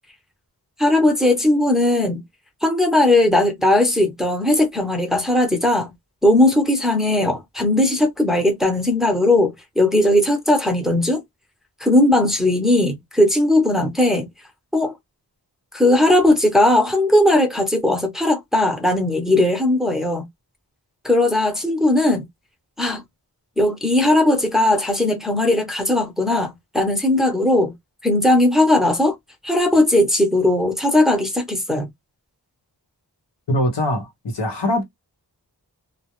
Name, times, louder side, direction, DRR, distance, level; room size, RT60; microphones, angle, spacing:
voice 1, 0.8-2.2 2.6-5.9 6.2-11.2 11.8-14.3 14.7-14.9 15.7-20.3 21.0-22.3 22.8-23.0 23.6-27.7 28.0-29.1 29.4-31.9, left 1 dB, ahead, 0.7 m, -18 dB
voice 2, 33.5-34.8, left 1 dB, 85° left, 0.9 m, -22 dB
2.2 x 2.0 x 2.9 m
wide cardioid pair, 60°, 41 cm